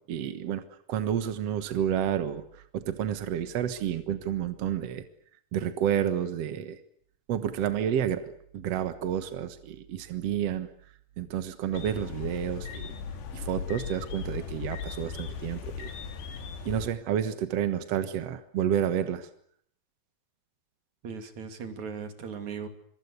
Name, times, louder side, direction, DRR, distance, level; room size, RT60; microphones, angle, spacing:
voice 1, 0.1-0.6 0.9-2.4 2.7-5.0 5.5-6.8 7.3-10.7 11.2-12.9 13.3-15.9 16.6-19.3, right 9 dB, 65° right, 10 dB, 1.6 m, -30 dB
sound 1, 11.7-16.9, left 6 dB, 85° left, 4.7 m, -37 dB
voice 2, 21.0-22.7, right 6 dB, 50° right, 7 dB, 3.6 m, -38 dB
25.5 x 23.5 x 8.2 m, 0.65 s
omnidirectional pair, 4.8 m